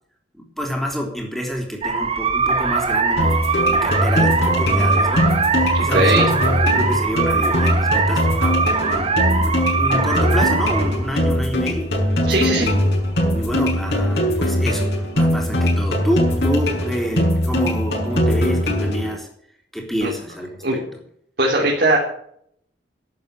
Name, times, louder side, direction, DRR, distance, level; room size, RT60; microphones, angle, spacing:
voice 1, 0.3-5.3 5.8-12.1 12.6-12.8 13.1-19.3 19.7-20.9, equal, ahead, 1 dB, 3.6 m, -28 dB
sound 1, 1.8-14.1, right 4 dB, 35° right, 1.4 m, -21 dB
sound 2, 3.2-19.2, left 1 dB, 65° left, 6.2 m, -21 dB
voice 2, 5.7-6.3 12.3-12.7 20.0-20.1 20.6-20.8 21.4-22.0, right 1 dB, 60° right, -2 dB, 3.1 m, -19 dB
12.5 x 8.9 x 8.5 m, 0.69 s
head